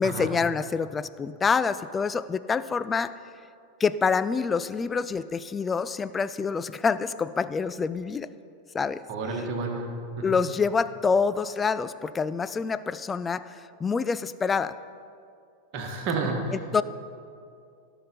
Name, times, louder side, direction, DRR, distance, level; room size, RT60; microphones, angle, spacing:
voice 1, 0.0-3.1 3.8-8.3 8.7-9.0 10.2-13.4 13.8-14.7 16.5-16.8, left 5 dB, 15° left, 15 dB, 0.3 m, -26 dB
voice 2, 9.1-10.4 15.7-16.5, right 3 dB, 40° right, 1 dB, 1.7 m, -30 dB
17.5 x 5.9 x 4.2 m, 2.4 s
figure-of-eight pair, 90°, 0 cm